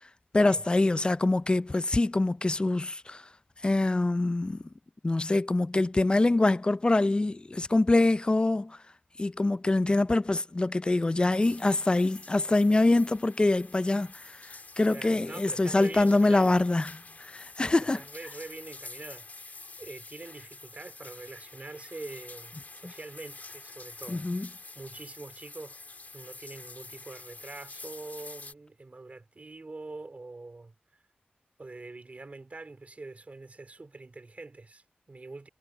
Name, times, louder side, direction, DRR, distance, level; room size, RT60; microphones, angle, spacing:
voice 1, 0.3-3.2 3.6-4.6 5.0-8.8 9.2-14.1 14.8-18.0 24.1-24.5, left 2 dB, 25° left, 0.4 m, -24 dB
sound 1, 11.4-28.5, left 3 dB, 50° left, 2.6 m, -48 dB
voice 2, 14.8-16.5 17.6-25.8 26.1-31.0 31.6-35.5, right 3 dB, 45° right, 4.4 m, -45 dB
wide cardioid pair, 70°, 4 cm